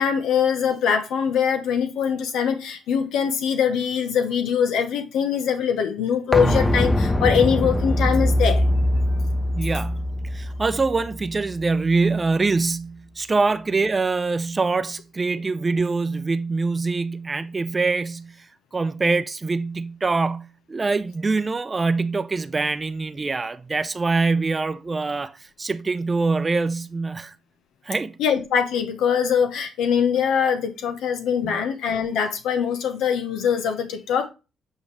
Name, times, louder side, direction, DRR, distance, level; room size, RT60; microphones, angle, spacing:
voice 1, 0.0-8.6 28.2-34.3, left 7 dB, 85° left, 1.0 m, -22 dB
sound 1, 6.3-12.0 12.3-12.4, left 1 dB, 15° left, 0.8 m, -22 dB
voice 2, 9.5-18.5 18.7-27.3 27.9-28.2 31.4-31.6, right 3 dB, 25° right, 0.6 m, -24 dB
8.5 x 4.9 x 3.3 m
cardioid pair, 90°, 0 cm